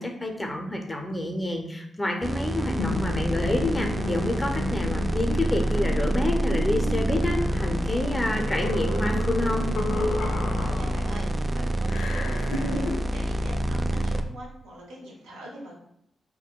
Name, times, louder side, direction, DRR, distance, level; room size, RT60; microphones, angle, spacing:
voice 1, 0.0-9.7, left 1 dB, 20° left, 3 dB, 0.6 m, -28 dB
sound 1, 2.2-14.2, right 1 dB, 30° right, 0.3 m, -27 dB
sound 2, 2.8-11.3 11.9-13.0, left 2 dB, 85° left, 0.4 m, -33 dB
voice 2, 10.2-15.7, right 1 dB, 90° right, -4 dB, 0.8 m, -43 dB
3.7 x 2.1 x 2.3 m, 0.75 s
hypercardioid pair, 40°, 0 cm